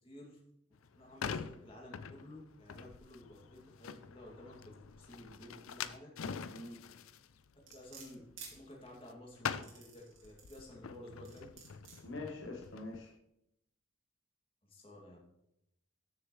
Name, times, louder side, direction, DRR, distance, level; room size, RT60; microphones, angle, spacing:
voice 1, 0.0-0.4 0.9-4.7 5.0-6.1 7.7-11.5 14.6-15.2, left 1 dB, 25° left, -2 dB, 2.4 m, -53 dB
sound 1, 0.7-9.1 9.4-13.0, left 6 dB, 85° left, 0.5 m, -45 dB
sound 2, 7.7-8.5 9.5-10.7 11.3-12.0 12.6-12.7, right 6 dB, 75° right, 3.1 m, -52 dB
voice 2, 12.0-13.1, left 2 dB, 65° left, 0 dB, 1.3 m, -44 dB
13.5 x 6.6 x 3.2 m, 0.80 s
head